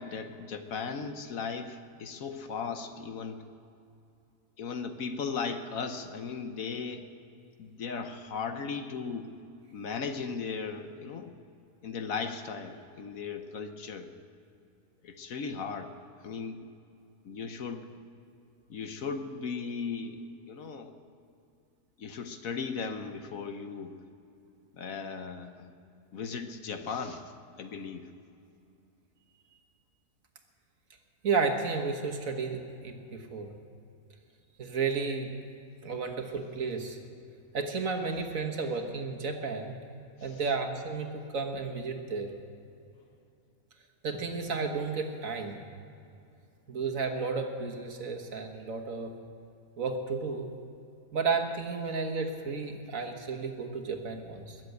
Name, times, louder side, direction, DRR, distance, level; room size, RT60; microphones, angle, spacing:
voice 1, 0.0-3.4 4.6-7.1 7.6-9.3 9.7-11.4 11.8-14.1 15.0-15.9 16.2-16.7 17.2-17.9 18.7-20.9 22.0-23.9 24.7-25.7 26.1-27.2 27.6-28.1 40.3-40.4, left 5 dB, 65° left, 8 dB, 1.3 m, -37 dB
voice 2, 31.2-33.5 34.6-35.3 35.8-37.0 37.5-39.8 40.2-42.3 44.0-45.6 46.7-49.1 49.8-50.5 51.1-54.6, right 4 dB, 60° right, 4 dB, 1.7 m, -32 dB
21.5 x 7.7 x 8.0 m, 2.6 s
omnidirectional pair, 1.6 m